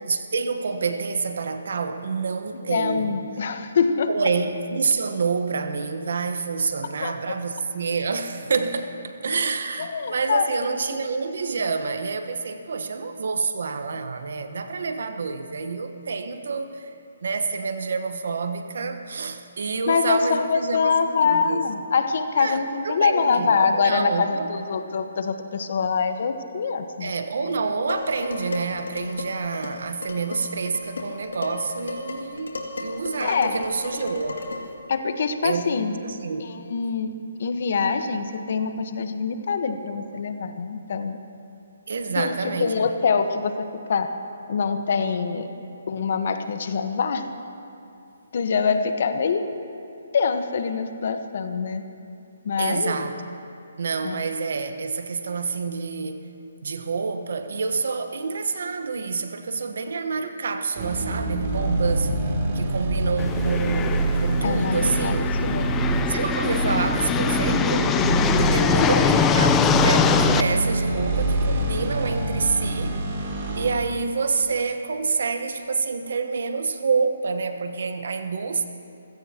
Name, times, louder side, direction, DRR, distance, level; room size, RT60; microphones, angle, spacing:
voice 1, 0.0-3.2 4.1-16.9 17.2-21.6 22.4-24.5 27.0-34.5 35.4-35.7 36.0-36.4 40.1-40.2 41.9-42.9 52.6-53.2 53.8-56.3 56.6-62.1 62.5-65.3 66.1-68.0 68.4-73.0 73.5-78.6, right 4 dB, 70° right, 8 dB, 1.2 m, -28 dB
voice 2, 2.5-4.3 7.0-7.1 9.8-10.7 11.1-11.2 19.9-27.1 33.2-33.6 34.9-36.0 36.4-37.1 37.4-41.2 42.2-43.5 43.9-44.1 44.5-45.5 45.9-47.3 48.3-49.5 50.1-51.9 52.4-53.0 54.0-54.2 64.4-65.7 68.7-69.3, left 5 dB, 60° left, 8 dB, 1.2 m, -24 dB
Dishes pots and pans, 27.9-34.8, left 3 dB, 85° left, 2.4 m, -35 dB
sound 1, 60.8-73.7, right 2 dB, 40° right, 2.9 m, -25 dB
sound 2, 63.2-70.4, left 7 dB, 15° left, 0.6 m, -23 dB
27.5 x 16.0 x 3.0 m, 2.6 s
hypercardioid pair, 150°, 0 cm